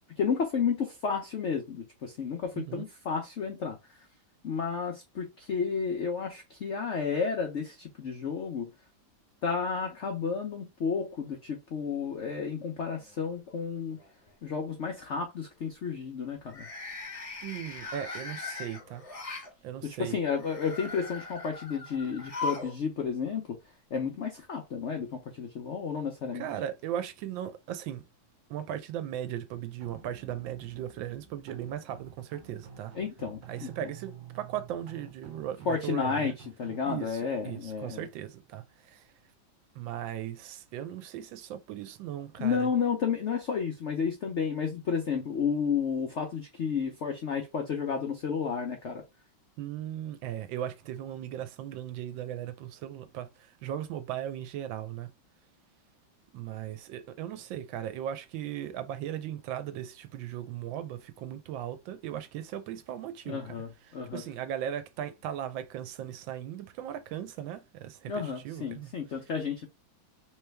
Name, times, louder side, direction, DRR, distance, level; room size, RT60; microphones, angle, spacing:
voice 1, 0.2-3.8 4.4-8.7 9.4-14.0 14.4-16.7 19.8-23.5 23.9-26.5 32.9-33.9 35.7-36.3 36.6-38.1 42.4-49.0 63.3-64.2 68.1-69.7, left 6 dB, 80° left, 0.6 m, -32 dB
voice 2, 2.5-2.9 17.4-19.0 19.6-20.2 26.3-28.0 28.5-32.9 33.5-36.3 36.8-39.0 39.8-42.7 49.6-53.3 53.6-55.1 56.3-63.5 63.9-68.9, right 11 dB, 80° right, 1.3 m, -37 dB
sound 1, 12.9-13.5 13.9-14.3 16.4-19.5 20.3-22.7 23.0-23.1 24.2-24.3, left 3 dB, 35° left, 0.5 m, -39 dB
sound 2, 29.8-36.8, right 8 dB, 55° right, 1.0 m, -50 dB
3.2 x 3.2 x 3.3 m
omnidirectional pair, 2.1 m